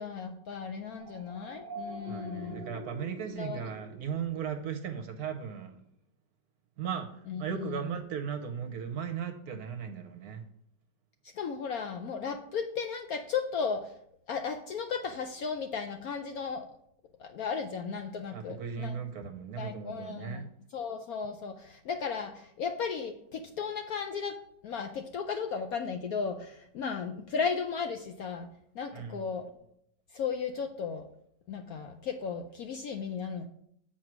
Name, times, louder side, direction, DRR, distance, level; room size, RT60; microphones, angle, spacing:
voice 1, 0.0-2.7 3.4-3.7 7.3-8.0 11.3-13.9 14.3-16.7 17.2-19.0 19.2-19.3 19.6-20.4 20.7-28.5 28.7-29.5 30.1-31.1 31.5-33.5, left 6 dB, 70° left, 6 dB, 0.9 m, -35 dB
sound 1, 1.0-4.7, right 2 dB, 20° left, 3.4 m, -45 dB
voice 2, 2.1-5.8 6.8-10.4 18.3-20.5 28.9-29.2, right 7 dB, 65° right, 7 dB, 1.1 m, -37 dB
7.6 x 4.5 x 6.0 m, 0.70 s
omnidirectional pair, 2.0 m